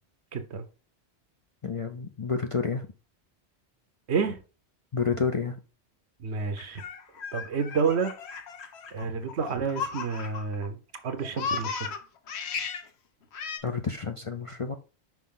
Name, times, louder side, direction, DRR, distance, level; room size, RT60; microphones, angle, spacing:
voice 1, 0.3-0.6 4.1-4.4 6.2-6.8 7.3-8.1 8.9-10.8 11.0-12.0, right 5 dB, 75° right, 1.1 m, -29 dB
voice 2, 1.6-2.9 4.9-5.6 9.0-9.1 13.6-14.7, left 5 dB, 40° left, 0.5 m, -29 dB
Laughter, 6.6-10.7 11.0-12.9 13.3-13.6, left 6 dB, 70° left, 1.1 m, -35 dB
6.0 x 5.1 x 3.7 m
omnidirectional pair, 1.1 m